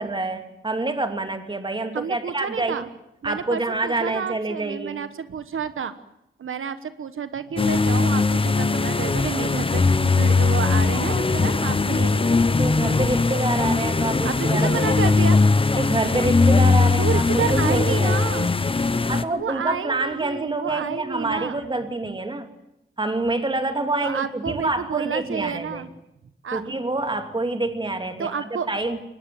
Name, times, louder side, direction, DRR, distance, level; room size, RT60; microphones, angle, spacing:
voice 1, 0.0-2.8 3.2-5.0 12.6-14.8 15.7-18.2 19.1-22.5 23.0-25.8 26.5-29.0, right 2 dB, 25° right, 7 dB, 2.7 m, -27 dB
voice 2, 1.9-2.9 3.2-5.9 6.4-12.4 14.2-15.4 17.0-18.5 19.3-21.6 24.0-25.9 26.4-26.8 28.2-28.7, right 7 dB, 85° right, 12 dB, 1.2 m, -30 dB
sound 1, 7.6-19.2, left 3 dB, 25° left, 1.0 m, -20 dB
24.5 x 20.0 x 9.3 m, 0.86 s
wide cardioid pair, 145°, 21 cm